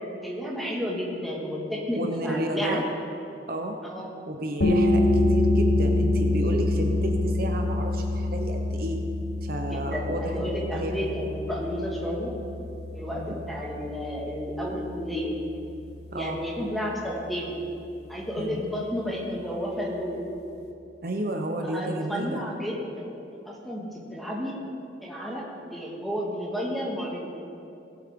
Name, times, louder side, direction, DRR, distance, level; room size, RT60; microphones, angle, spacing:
voice 1, 0.2-2.8 3.8-4.1 9.7-12.3 12.9-15.4 16.1-17.6 18.1-20.3 21.6-23.1 23.5-24.6 25.0-25.4 25.7-27.3, equal, ahead, -4 dB, 1.8 m, -31 dB
voice 2, 1.9-2.8 3.5-3.8 4.3-9.0 9.4-11.3 13.1-13.4 16.1-16.4 18.4-18.6 21.0-22.4, right 1 dB, 55° right, 3 dB, 0.8 m, -32 dB
sound 1, 4.6-16.0, left 2 dB, 65° left, 1.0 m, -26 dB
18.5 x 8.3 x 3.7 m, 2.7 s
head